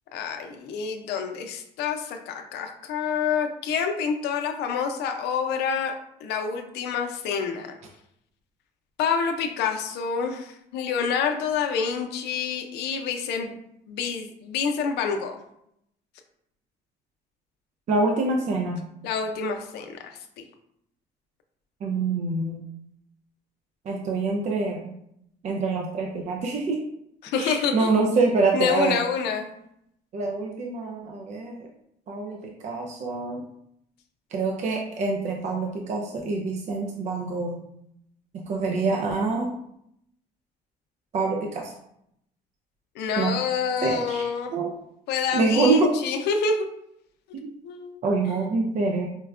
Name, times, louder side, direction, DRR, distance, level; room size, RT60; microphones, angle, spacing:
voice 1, 0.1-5.9 6.2-7.8 9.0-13.6 13.9-15.4 19.0-20.4 27.2-27.9 28.5-29.5 43.0-44.5 45.1-46.7 47.6-48.0 48.3-48.4, left 6 dB, 80° left, 5 dB, 0.5 m, -27 dB
voice 2, 17.9-18.9 21.8-22.6 23.9-24.9 25.4-26.8 27.4-29.0 30.1-31.7 32.1-33.4 34.3-37.6 38.5-39.6 41.1-41.7 43.2-43.4 43.8-44.7 45.3-45.9 47.3-47.5 48.0-49.1, right 3 dB, 45° right, 0 dB, 0.4 m, -25 dB
4.4 x 2.1 x 2.4 m, 0.76 s
cardioid pair, 110°, 17 cm